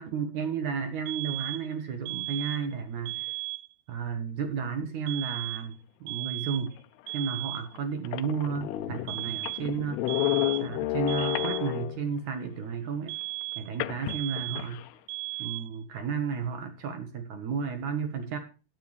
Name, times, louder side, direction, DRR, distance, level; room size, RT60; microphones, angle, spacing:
voice 1, 0.0-3.3 3.9-6.8 7.1-10.2 10.6-13.2 13.6-14.9 15.4-18.4, right 6 dB, 60° right, 7 dB, 2.2 m, -33 dB
sound 1, 1.1-1.7 2.1-2.7 3.1-3.7 5.1-5.7 6.1-6.7 7.1-7.7 9.1-9.7 10.1-10.7 11.1-11.7 13.1-13.8 14.1-14.8 15.1-15.8, right 22 dB, 85° right, 1.9 m, -36 dB
sound 2, 7.1-7.2 7.8-7.9 8.1-12.1 13.8-14.9, left 16 dB, 80° left, 2.6 m, -31 dB
14.0 x 9.8 x 3.2 m, 0.34 s
omnidirectional pair, 4.7 m